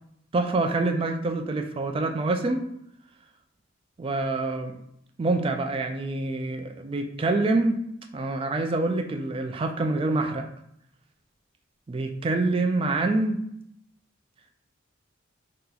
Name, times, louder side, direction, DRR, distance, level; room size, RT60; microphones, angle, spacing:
voice 1, 0.3-2.7 4.0-4.8 5.2-7.8 8.1-10.5 11.9-13.4, right 2 dB, 30° right, 5 dB, 0.3 m, -26 dB
2.8 x 2.3 x 3.9 m, 0.74 s
head